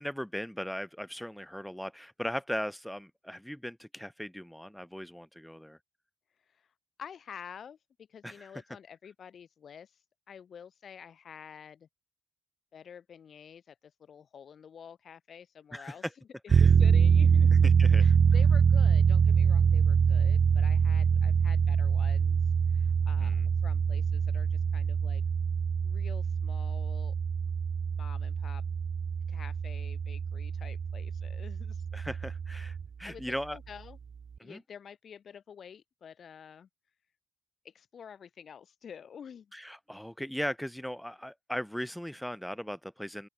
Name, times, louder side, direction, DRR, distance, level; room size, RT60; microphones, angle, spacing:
voice 1, 0.0-5.8 8.2-8.5 15.7-16.1 16.5-16.7 17.6-18.0 23.2-23.4 31.9-33.6 34.4-34.6 39.5-43.3, equal, ahead, 0.6 m, -38 dB
voice 2, 7.0-10.0 10.3-11.9 12.7-17.7 18.0-22.4 22.7-25.2 25.8-27.1 28.0-28.6 29.3-31.9 33.0-34.0 34.4-36.7 37.6-39.5, left 7 dB, 55° left, 4.3 m, -49 dB
sound 1, 16.5-32.9, right 6 dB, 45° right, 0.5 m, -25 dB
open air
cardioid pair, 90°, 0 cm